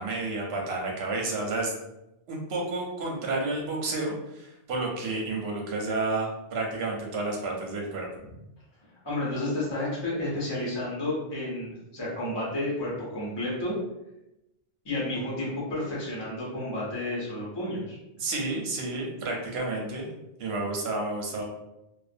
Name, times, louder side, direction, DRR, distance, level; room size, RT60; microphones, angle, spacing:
voice 1, 0.0-1.7 2.3-8.1 18.2-20.1 20.4-21.4, right 2 dB, 70° right, 0 dB, 0.9 m, -30 dB
voice 2, 9.0-13.8 14.8-18.0, left 1 dB, 25° left, -6 dB, 0.7 m, -31 dB
2.5 x 2.2 x 2.5 m, 0.92 s
omnidirectional pair, 1.1 m